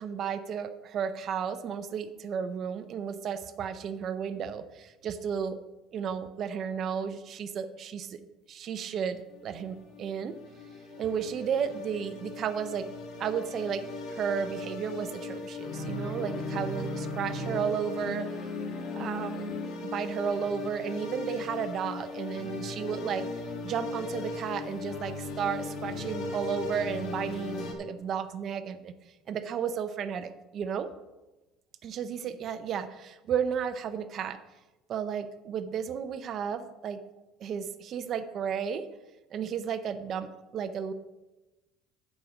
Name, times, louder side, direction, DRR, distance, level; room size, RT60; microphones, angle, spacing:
voice 1, 0.0-5.6 5.9-8.2 8.5-10.3 11.0-12.9 13.2-13.8 14.1-18.3 18.9-23.3 23.6-28.9 29.3-30.9 31.8-34.4 34.9-37.0 37.4-38.9 39.3-40.9, right 7 dB, 45° right, 11 dB, 0.6 m, -33 dB
sound 1, 9.3-27.7, left 3 dB, 60° left, 1.8 m, -37 dB
9.0 x 5.0 x 7.1 m, 1.1 s
supercardioid pair, 115°, 0 cm